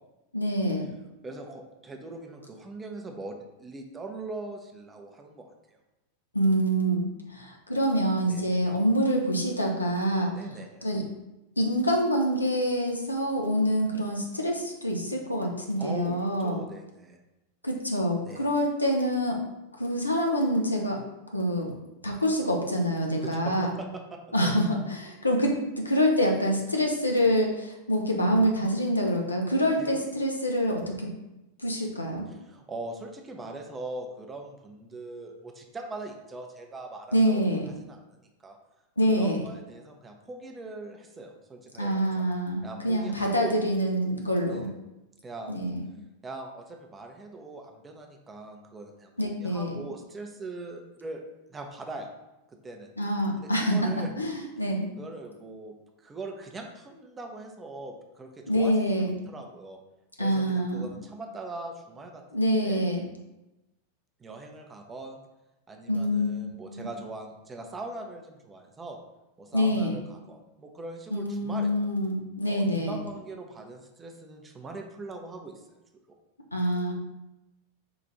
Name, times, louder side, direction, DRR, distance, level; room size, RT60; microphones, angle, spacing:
voice 1, 0.3-0.9 6.3-10.3 10.8-11.0 11.6-16.6 17.6-19.4 19.8-21.0 21.3-21.7 22.0-23.7 24.3-31.1 31.6-32.3 37.1-37.7 39.0-39.4 41.8-44.7 45.5-45.9 49.2-49.7 53.0-53.9 54.2-54.9 58.5-59.1 60.2-60.9 62.3-63.0 65.9-66.9 69.5-70.0 71.1-73.0 76.5-76.9, equal, 85° left, 0 dB, 0.7 m, -26 dB
voice 2, 1.2-5.8 8.3-8.6 10.3-10.9 15.8-17.2 18.2-18.5 23.2-24.5 29.8-30.1 32.3-38.6 39.1-42.2 42.6-43.6 44.5-44.7 45.2-45.6 46.2-51.2 51.5-52.1 52.6-52.9 53.4-54.1 55.0-55.7 56.0-59.8 60.2-62.8 64.2-65.2 65.7-69.0 69.4-71.7 72.5-75.6, right 2 dB, 15° right, 3 dB, 0.6 m, -41 dB
4.8 x 2.5 x 4.0 m, 0.98 s
figure-of-eight pair, 90°, 0 cm